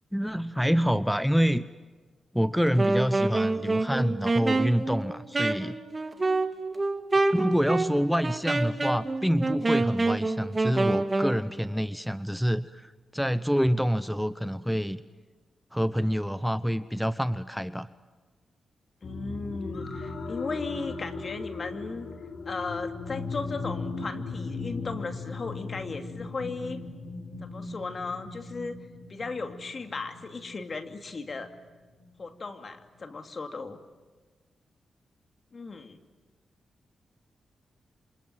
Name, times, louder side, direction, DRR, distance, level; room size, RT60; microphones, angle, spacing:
voice 1, 0.1-1.7 2.3-5.8 7.3-15.0 15.7-17.9, equal, ahead, 14 dB, 0.8 m, -27 dB
Wind instrument woodwind instrument, 2.7-11.4, right 2 dB, 35° right, 2.1 m, -27 dB
sound 1, 19.0-32.4 33.0-33.1, left 3 dB, 65° left, 3.9 m, -38 dB
voice 2, 19.0-22.1 22.5-26.8 27.4-28.8 29.1-31.5 32.2-33.8 35.5-36.0, left 4 dB, 50° left, 7 dB, 2.6 m, -36 dB
28.0 x 26.5 x 7.8 m, 1.4 s
supercardioid pair, 45°, 0 cm